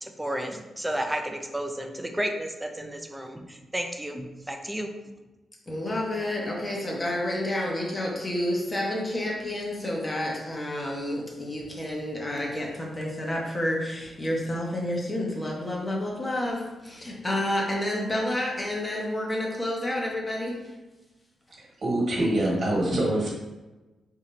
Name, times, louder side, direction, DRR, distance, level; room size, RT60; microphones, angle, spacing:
voice 1, 0.0-4.9, right 1 dB, 10° right, 4 dB, 0.4 m, -32 dB
voice 2, 5.7-20.7, left 1 dB, 20° left, -2 dB, 1.0 m, -29 dB
voice 3, 21.6-23.3, right 1 dB, 50° right, -4 dB, 1.4 m, -25 dB
3.8 x 2.7 x 4.2 m, 1.1 s
cardioid pair, 105°, 0 cm